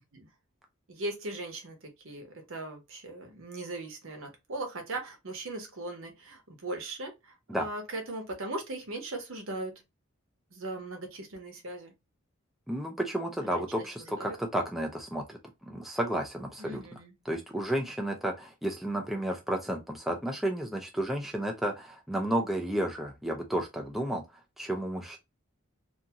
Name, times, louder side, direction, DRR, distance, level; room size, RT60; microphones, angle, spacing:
voice 1, 0.9-9.7 10.5-11.9 13.4-14.4 16.6-17.1, right 2 dB, 80° right, 0.9 m, -39 dB
voice 2, 12.7-15.4 15.7-16.8 17.3-24.2 24.6-25.2, right 1 dB, ahead, 0.3 m, -32 dB
2.6 x 2.3 x 2.8 m
head